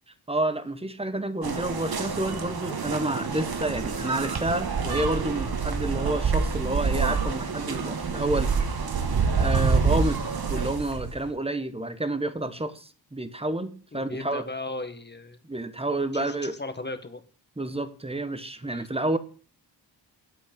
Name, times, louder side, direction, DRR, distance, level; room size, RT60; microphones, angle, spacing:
voice 1, 0.3-8.7 9.4-14.4 15.4-16.6 17.6-19.2, right 2 dB, 15° right, 11 dB, 1.1 m, -29 dB
sound 1, 1.4-11.3, right 5 dB, 55° right, 1.4 m, -27 dB
voice 2, 13.9-15.4 16.1-17.2 18.6-18.9, left 2 dB, 25° left, 9 dB, 1.3 m, -36 dB
8.3 x 8.2 x 5.2 m, 0.40 s
cardioid pair, 60°, 44 cm